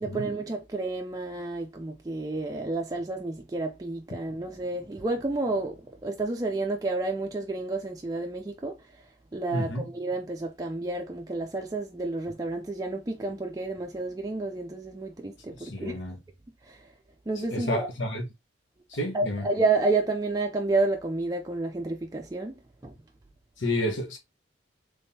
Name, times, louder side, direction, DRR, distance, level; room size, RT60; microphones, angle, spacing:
voice 1, 0.0-16.0 16.6-16.9 17.3-17.9 19.1-22.5 22.8-22.9, right 3 dB, 20° right, 0.4 m, -30 dB
voice 2, 9.5-9.8 15.6-16.2 17.5-18.3 18.9-19.5 23.6-24.2, left 1 dB, 80° left, 1.2 m, -30 dB
3.5 x 3.3 x 2.7 m
head